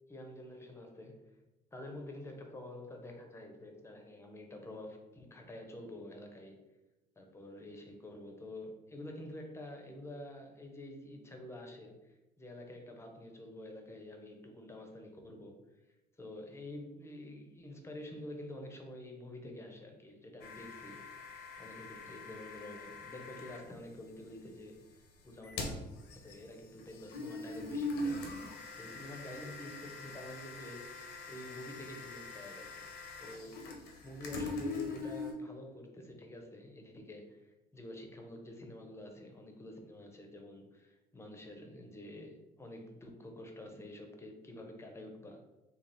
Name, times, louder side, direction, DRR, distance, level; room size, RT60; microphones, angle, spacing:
voice 1, 0.1-1.4 1.7-6.6 7.2-15.6 16.2-21.2 21.6-25.8 26.1-28.4 28.8-32.9 33.2-33.6 34.0-45.4, left 1 dB, 15° left, 3 dB, 0.6 m, -48 dB
sound 1, 20.4-23.6 25.3-35.3, left 2 dB, 90° left, 0.8 m, -42 dB
3.3 x 2.4 x 3.9 m, 1.0 s
cardioid pair, 110°, 17 cm